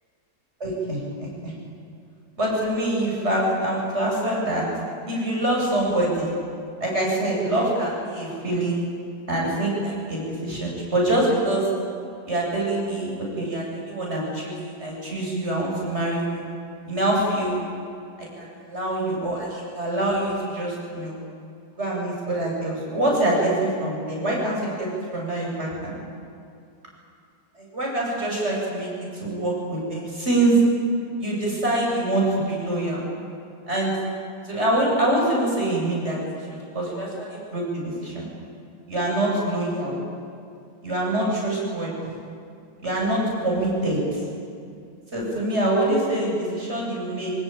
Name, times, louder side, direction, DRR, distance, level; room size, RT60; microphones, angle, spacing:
voice 1, 0.6-1.5 2.4-4.7 5.1-6.3 6.8-8.8 9.3-11.7 12.3-16.5 16.9-17.6 18.2-21.2 21.8-25.9 27.6-30.6 31.2-33.0 33.7-33.9 34.4-36.2 36.5-38.3 38.9-39.9 40.8-42.2 42.8-44.2 45.1-47.3, right 1 dB, 35° right, -3 dB, 8.4 m, -25 dB
26.0 x 20.5 x 9.2 m, 2.4 s
omnidirectional pair, 2.1 m